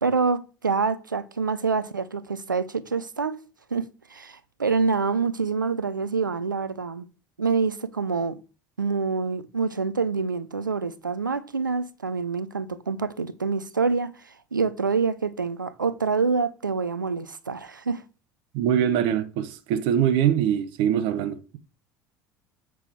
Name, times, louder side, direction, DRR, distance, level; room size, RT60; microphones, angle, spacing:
voice 1, 0.0-3.4 3.7-7.1 7.4-8.4 8.8-14.1 14.5-18.0, right 4 dB, 85° right, 0.5 m, -26 dB
voice 2, 18.5-21.6, right 9 dB, 55° right, 0.9 m, -23 dB
7.6 x 5.9 x 3.5 m
figure-of-eight pair, 65°, 10 cm